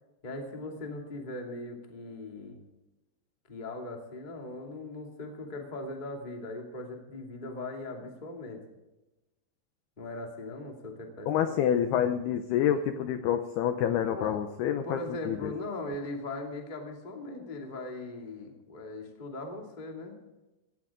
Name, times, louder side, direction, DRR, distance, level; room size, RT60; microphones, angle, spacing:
voice 1, 0.2-2.6 3.5-8.6 10.0-11.6 14.1-14.4 14.8-20.2, left 2 dB, 25° left, 1 dB, 0.9 m, -39 dB
voice 2, 11.3-15.0 15.3-15.5, left 9 dB, 85° left, 8 dB, 2.3 m, -27 dB
17.5 x 16.5 x 3.7 m, 1.0 s
omnidirectional pair, 5.7 m